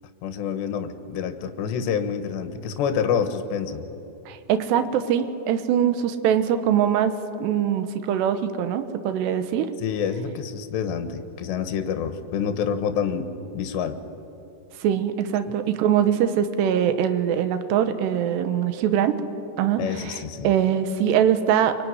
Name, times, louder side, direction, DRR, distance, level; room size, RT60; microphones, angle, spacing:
voice 1, 0.2-3.9 9.8-13.3 13.5-14.0 19.8-20.5, left 7 dB, 80° left, 8 dB, 3.5 m, -27 dB
voice 2, 4.3-9.7 14.8-19.2 19.6-20.2 20.4-21.8, right 9 dB, 80° right, 9 dB, 3.3 m, -22 dB
25.0 x 25.0 x 9.7 m, 2.8 s
omnidirectional pair, 5.0 m